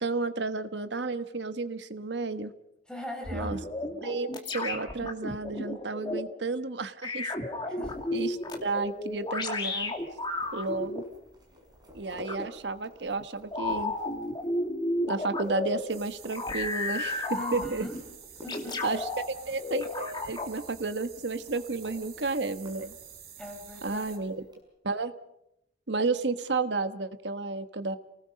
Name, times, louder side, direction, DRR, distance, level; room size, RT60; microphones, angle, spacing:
voice 1, 0.0-2.5 3.3-3.6 4.0-7.3 8.1-9.9 10.5-11.0 11.9-13.9 15.1-17.8 18.8-19.0 19.5-22.9 23.8-24.4 24.8-25.1 25.9-28.0, right 3 dB, 80° right, 10 dB, 1.3 m, -32 dB
voice 2, 2.9-3.5 7.7-7.9 17.3-18.0 18.4-18.8 23.4-24.1, left 1 dB, 5° left, 2 dB, 4.9 m, -41 dB
sound 1, 3.2-6.2 7.0-11.0 12.3-12.5 13.5-15.8 16.3-18.0 18.5-19.2 19.6-20.5, left 2 dB, 25° left, 2.4 m, -32 dB
sound 2, 7.9-24.6, left 1 dB, 25° right, 6.0 m, -53 dB
sound 3, 15.9-24.2, right 8 dB, 60° right, 3.5 m, -49 dB
29.0 x 19.0 x 5.3 m, 0.81 s
head